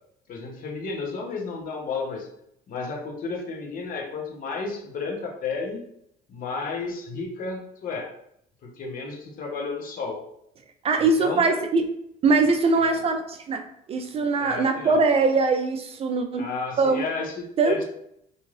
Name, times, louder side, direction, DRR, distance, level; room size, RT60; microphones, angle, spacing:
voice 1, 0.3-2.3 2.7-5.8 6.3-8.1 8.6-10.2 11.0-11.5 12.8-13.0 14.4-15.0 16.4-17.8, left 4 dB, 55° left, 1 dB, 0.8 m, -32 dB
voice 2, 10.8-11.8 12.2-16.5 16.8-17.0 17.6-17.8, right 3 dB, 35° right, 6 dB, 0.3 m, -22 dB
2.6 x 2.4 x 3.1 m, 0.73 s
cardioid pair, 110°, 17 cm